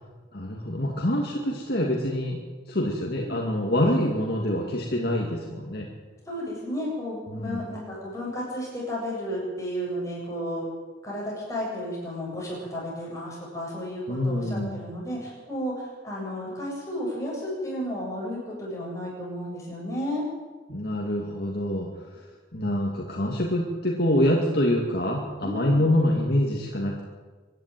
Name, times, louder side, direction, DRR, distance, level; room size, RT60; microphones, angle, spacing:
voice 1, 0.3-2.4 2.7-5.9 7.3-7.6 14.1-14.8 20.7-27.0, left 1 dB, 55° left, -1 dB, 2.4 m, -26 dB
voice 2, 3.1-3.4 6.2-10.7 11.0-20.2 25.4-25.8, equal, 15° left, -4 dB, 7.8 m, -33 dB
25.5 x 11.0 x 9.2 m, 1.3 s
head